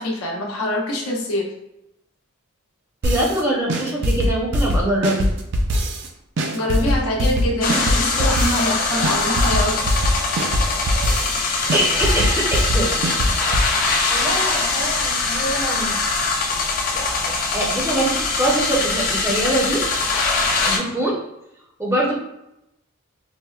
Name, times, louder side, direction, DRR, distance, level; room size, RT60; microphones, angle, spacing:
voice 1, 0.0-1.5 6.4-9.8, left 1 dB, 90° left, -2 dB, 0.8 m, -24 dB
voice 2, 3.0-5.3 11.7-12.9 14.1-16.0 17.3-19.8 20.7-21.2 21.8-22.1, right 1 dB, 15° right, -4 dB, 0.6 m, -23 dB
sound 1, 3.0-3.4 3.7-6.1 6.4-8.7 9.0-11.4 11.7-13.7, equal, 55° right, 0.4 m, -21 dB
sound 2, 7.6-20.8, left 3 dB, 40° left, 0.4 m, -22 dB
4.2 x 2.1 x 2.3 m, 0.88 s
head